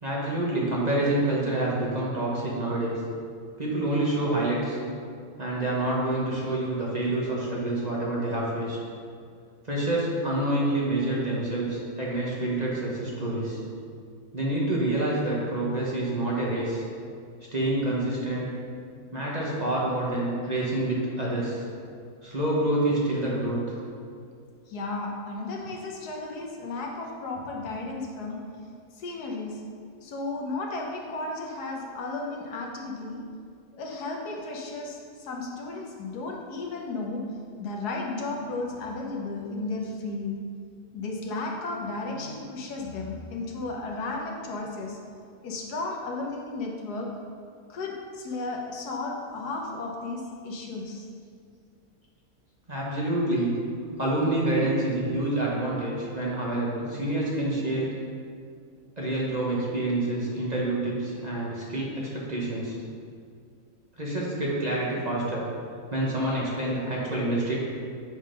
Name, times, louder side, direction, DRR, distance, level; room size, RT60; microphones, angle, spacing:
voice 1, 0.0-3.0 3.6-4.8 5.4-8.8 9.6-13.6 14.3-16.8 17.5-18.5 19.1-21.6 22.2-23.8 52.7-53.5 54.0-57.9 59.0-62.8 64.0-65.4 65.9-67.6, right 1 dB, 30° right, -5 dB, 1.2 m, -27 dB
voice 2, 24.7-28.4 28.9-29.6 30.0-33.2 33.7-37.2 37.6-40.4 40.9-45.0 45.4-47.1 47.7-51.1, left 3 dB, 85° left, 0 dB, 1.5 m, -34 dB
7.8 x 3.8 x 5.2 m, 2.2 s
omnidirectional pair, 1.7 m